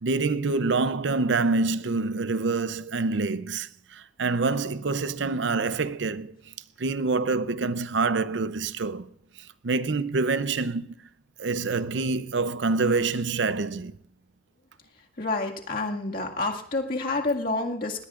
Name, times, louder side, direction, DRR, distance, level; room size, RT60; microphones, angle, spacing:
voice 1, 0.0-6.3 6.8-9.1 9.4-10.9 11.4-13.9, right 3 dB, 75° right, 0.6 m, -26 dB
voice 2, 15.2-18.0, left 2 dB, 50° left, 2.0 m, -28 dB
20.5 x 18.0 x 2.5 m
head